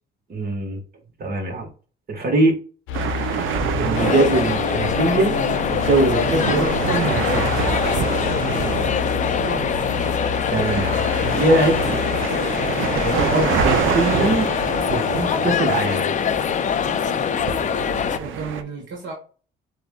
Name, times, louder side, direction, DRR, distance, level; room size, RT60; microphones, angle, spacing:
voice 1, 0.3-0.8 1.2-1.7 2.1-2.6 3.8-5.3 5.7-7.6 10.5-11.8 13.0-14.5 14.9-16.1, right 2 dB, 50° right, 2 dB, 1.4 m, -22 dB
sound 1, 2.9-12.3, left 8 dB, 90° left, 0.5 m, -30 dB
sound 2, 2.9-18.6, right 7 dB, 85° right, 0.6 m, -27 dB
sound 3, 3.9-18.2, left 8 dB, 40° left, 0.4 m, -23 dB
voice 2, 9.2-9.7 18.2-19.1, right 3 dB, 65° right, -1 dB, 1.1 m, -32 dB
7.7 x 2.6 x 2.3 m, 0.39 s
cardioid pair, 90°, 20 cm